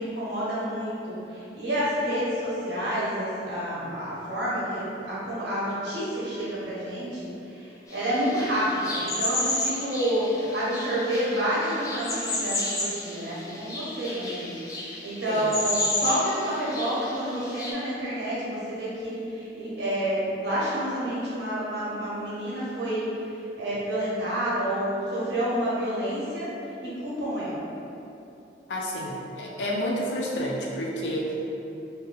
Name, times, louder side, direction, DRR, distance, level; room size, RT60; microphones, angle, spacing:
voice 1, 0.0-7.3 7.9-14.5 15.0-23.1 23.6-26.5 26.8-27.6, equal, 75° right, -8 dB, 1.0 m, -29 dB
sound 1, 7.9-17.7, left 2 dB, 20° left, 0.5 m, -32 dB
voice 2, 15.3-15.6 28.7-31.3, equal, 90° left, -2 dB, 0.5 m, -30 dB
2.7 x 2.2 x 3.7 m, 2.8 s
head